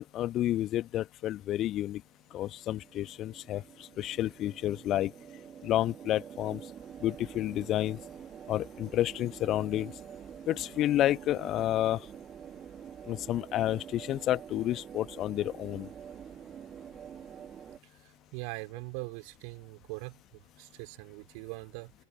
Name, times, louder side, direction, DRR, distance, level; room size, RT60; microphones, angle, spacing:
voice 1, 0.0-2.0 2.3-5.1 5.6-6.6 7.0-8.0 8.5-9.9 10.5-12.0 13.1-15.9, left 13 dB, 35° left, 1.4 m, -30 dB
sound 1, 2.3-17.8, right 8 dB, 25° right, 2.7 m, -47 dB
voice 2, 18.3-20.2 20.6-21.9, right 40 dB or more, 45° right, 3.5 m, -41 dB
open air
figure-of-eight pair, 90°, 0 cm